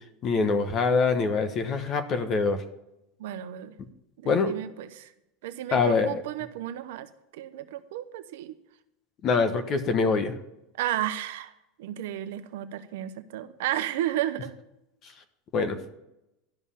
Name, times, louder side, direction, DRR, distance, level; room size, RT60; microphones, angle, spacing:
voice 1, 0.2-2.6 4.2-4.5 5.7-6.2 9.2-10.3 15.5-15.8, left 4 dB, 40° left, 10 dB, 1.1 m, -24 dB
voice 2, 3.2-3.7 4.2-5.1 5.4-8.6 10.8-11.5 11.8-14.5, right 12 dB, 75° right, 11 dB, 0.8 m, -33 dB
12.0 x 5.5 x 7.1 m, 0.89 s
hypercardioid pair, 100°, 0 cm